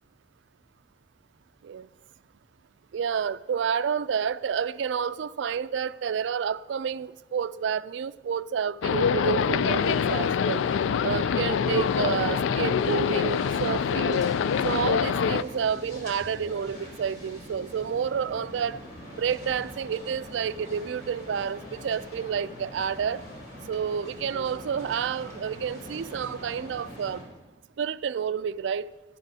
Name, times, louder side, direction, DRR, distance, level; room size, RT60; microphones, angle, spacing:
voice 1, 2.9-10.6 11.0-14.2 14.6-18.8 19.1-23.2 23.7-27.2 27.8-28.9, right 7 dB, 75° right, 0.3 m, -29 dB
sound 1, 8.8-15.4, left 7 dB, 85° left, 0.3 m, -25 dB
sound 2, 9.5-27.2, equal, 55° left, 5.2 m, -43 dB
20.0 x 13.0 x 2.8 m
head